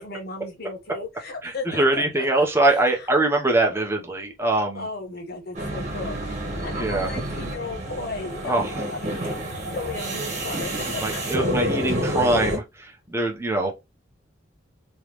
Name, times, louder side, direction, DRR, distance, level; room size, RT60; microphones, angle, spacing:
voice 1, 0.0-3.1 4.7-9.2 9.7-11.8 12.2-12.3, left 3 dB, 50° left, 1.3 m, -36 dB
voice 2, 1.4-4.9 6.7-7.1 8.4-8.7 11.0-13.7, right 2 dB, 15° right, 0.9 m, -23 dB
sound 1, 5.5-12.6, equal, 40° right, 1.4 m, -29 dB
3.5 x 3.2 x 3.1 m
head